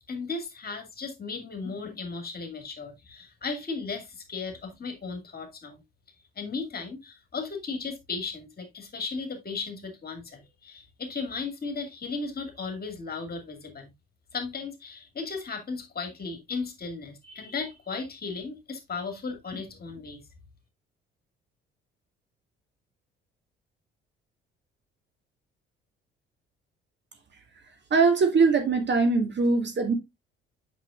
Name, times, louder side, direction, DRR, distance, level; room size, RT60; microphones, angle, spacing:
voice 1, 0.1-5.8 6.4-13.9 14.3-20.2, left 4 dB, 30° left, 2.4 m, -36 dB
voice 2, 27.9-29.9, right 4 dB, 40° right, 2.2 m, -22 dB
9.2 x 6.1 x 2.4 m
figure-of-eight pair, 50°, 29 cm